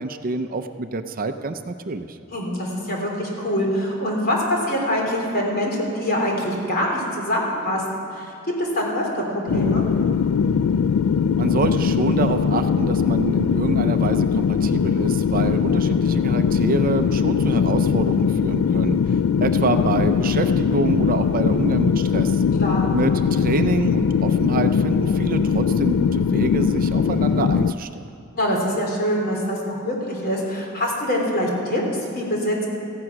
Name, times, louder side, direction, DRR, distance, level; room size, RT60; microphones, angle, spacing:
voice 1, 0.0-2.2 11.4-19.0 19.4-22.4 22.9-28.1, right 3 dB, 40° right, 7 dB, 0.6 m, -26 dB
voice 2, 2.3-7.8 8.1-8.3 8.6-9.8 22.6-22.9 28.4-32.7, equal, 45° left, -1 dB, 3.5 m, -24 dB
sound 1, 9.5-27.7, left 6 dB, 75° left, 0.3 m, -20 dB
16.0 x 15.0 x 6.0 m, 2.7 s
head